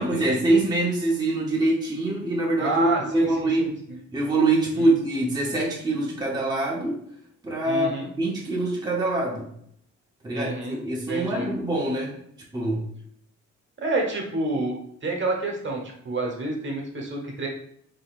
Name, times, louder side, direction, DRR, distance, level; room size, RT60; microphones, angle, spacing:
voice 1, 0.0-3.7 4.1-7.0 7.4-9.5 10.2-12.2 12.5-12.8, right 2 dB, 15° right, -3 dB, 0.8 m, -24 dB
voice 2, 2.6-3.3 3.6-3.7 4.8-4.9 7.6-8.1 10.3-10.8 11.1-11.5 13.8-17.5, right 2 dB, 40° right, 0 dB, 1.1 m, -28 dB
3.7 x 3.6 x 2.4 m, 0.68 s
cardioid pair, 90°, 30 cm